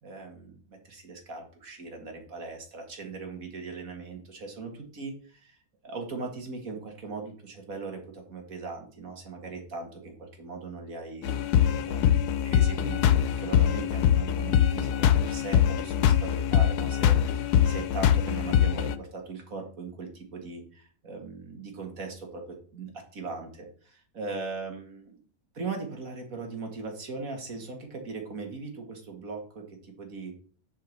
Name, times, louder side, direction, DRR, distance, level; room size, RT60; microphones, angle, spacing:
voice 1, 0.0-5.6 5.8-11.6 11.8-25.2 25.5-30.3, right 3 dB, 60° right, 3 dB, 2.3 m, -39 dB
sound 1, 11.2-19.0, left 9 dB, 90° left, 1.2 m, -23 dB
7.7 x 4.7 x 6.5 m, 0.44 s
omnidirectional pair, 1.6 m